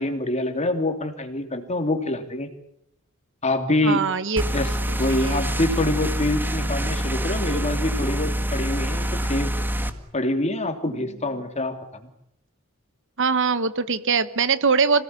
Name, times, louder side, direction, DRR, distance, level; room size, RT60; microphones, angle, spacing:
voice 1, 0.0-2.5 3.4-4.0 4.5-9.5 10.1-12.1, left 1 dB, 30° left, 7 dB, 3.0 m, -25 dB
voice 2, 3.8-4.4 4.9-5.4 13.2-15.0, right 5 dB, 60° right, 14 dB, 1.3 m, -22 dB
sound 1, 4.4-9.9, equal, 10° right, 1.9 m, -26 dB
26.5 x 18.5 x 9.8 m, 0.74 s
head